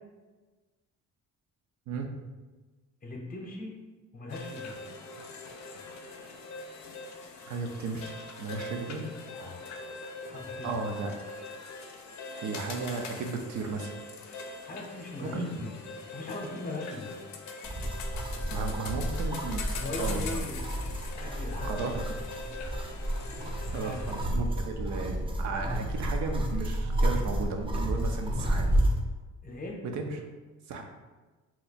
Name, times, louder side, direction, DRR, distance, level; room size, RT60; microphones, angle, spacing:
voice 1, 1.9-2.2 7.5-9.1 10.6-11.1 12.3-13.9 15.2-15.7 18.5-19.7 20.0-20.2 21.6-22.1 23.7-28.7 29.9-30.2 30.7-30.8, right 4 dB, 65° right, 4 dB, 0.5 m, -35 dB
voice 2, 3.0-3.7 4.1-4.9 9.3-9.8 10.3-10.7 14.6-15.8 16.1-17.2 19.8-20.7 21.2-21.7 23.8-24.0 29.4-29.8, left 2 dB, 30° left, 0 dB, 0.7 m, -39 dB
sound 1, 4.3-24.3, left 3 dB, 70° left, 0.5 m, -42 dB
sound 2, 17.6-29.0, right 1 dB, 20° right, 0.4 m, -31 dB
2.9 x 2.2 x 4.0 m, 1.3 s
cardioid pair, 90°, 30 cm